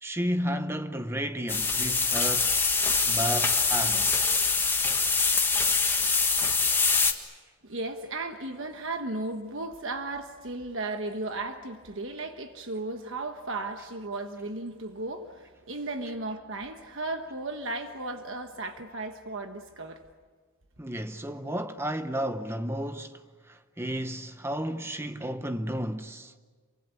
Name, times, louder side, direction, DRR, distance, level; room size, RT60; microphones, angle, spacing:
voice 1, 0.0-2.5 3.1-4.2 20.8-26.3, equal, 10° right, 0.8 m, -32 dB
sound 1, 1.5-7.1, left 4 dB, 10° left, 1.6 m, -24 dB
voice 2, 7.6-20.0, right 2 dB, 55° right, 1.3 m, -35 dB
28.0 x 24.5 x 8.5 m
head